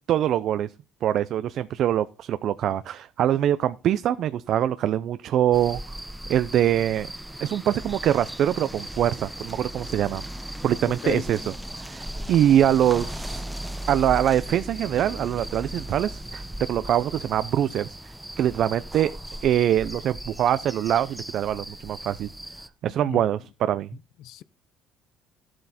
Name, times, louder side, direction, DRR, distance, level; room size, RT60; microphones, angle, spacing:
voice 1, 0.1-0.7 1.0-5.8 6.3-7.1 7.4-10.3 10.6-13.4 13.9-16.4 16.7-18.0 18.4-19.1 19.4-22.3 22.8-23.9, right 11 dB, 55° right, 0.5 m, -23 dB
sound 1, 5.5-22.7, right 1 dB, 5° right, 0.8 m, -37 dB
voice 2, 22.9-23.2 24.2-24.4, left 11 dB, 70° left, 0.6 m, -33 dB
12.5 x 7.7 x 4.2 m
cardioid pair, 125°, 0 cm